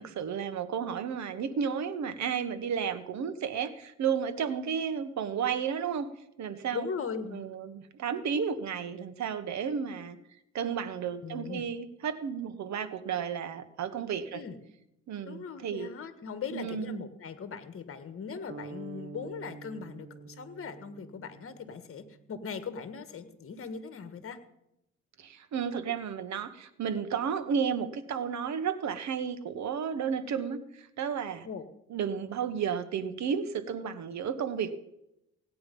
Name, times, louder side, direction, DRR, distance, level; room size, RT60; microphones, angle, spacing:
voice 1, 0.0-6.1 6.4-6.9 7.3-10.2 10.5-14.4 15.1-15.9 16.5-17.0 25.2-31.5 31.9-34.7, right 7 dB, 65° right, 11 dB, 1.4 m, -32 dB
voice 2, 6.7-7.6 11.2-11.7 14.3-14.6 15.2-24.4 31.4-31.6, left 6 dB, 45° left, 10 dB, 1.7 m, -39 dB
sound 1, 18.5-22.4, right 5 dB, 50° right, 1.1 m, -47 dB
17.5 x 9.5 x 5.4 m, 0.83 s
cardioid pair, 90°, 30 cm